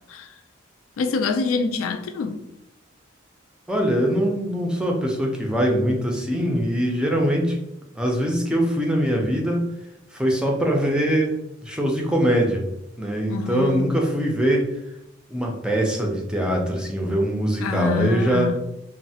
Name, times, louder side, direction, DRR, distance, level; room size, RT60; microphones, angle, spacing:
voice 1, 1.0-2.4 13.3-13.8 17.6-18.6, left 4 dB, 90° left, 0.3 m, -26 dB
voice 2, 3.7-7.6 8.0-9.7 10.1-12.6 13.0-14.7 15.3-18.5, equal, 5° right, 0.4 m, -22 dB
3.1 x 2.0 x 2.7 m
head